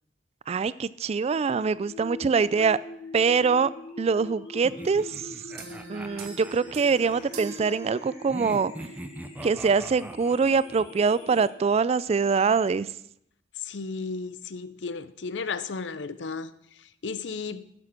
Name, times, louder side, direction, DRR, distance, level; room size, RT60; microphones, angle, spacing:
voice 1, 0.5-2.8 3.1-3.7 4.0-5.3 5.9-8.7 9.4-12.9, right 5 dB, 35° right, 0.3 m, -24 dB
sound 1, 1.5-11.5, left 2 dB, 35° left, 3.4 m, -44 dB
sound 2, 4.6-7.3 8.3-10.9, right 1 dB, 10° right, 0.6 m, -42 dB
sound 3, 5.6-8.6, right 3 dB, 55° right, 1.6 m, -44 dB
voice 2, 13.6-16.5 16.8-17.6, left 4 dB, 70° left, 0.6 m, -34 dB
12.0 x 7.6 x 6.0 m
head